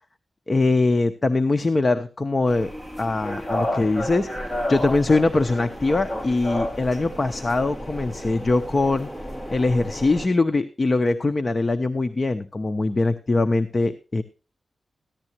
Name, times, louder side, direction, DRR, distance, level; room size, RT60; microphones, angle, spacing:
voice 1, 0.5-2.7 3.0-9.1 9.5-14.2, left 3 dB, 30° left, 9 dB, 0.7 m, -22 dB
sound 1, 2.5-10.3, left 1 dB, 15° left, 1.9 m, -31 dB
14.5 x 11.0 x 2.9 m, 0.33 s
wide cardioid pair, 125°, 0 cm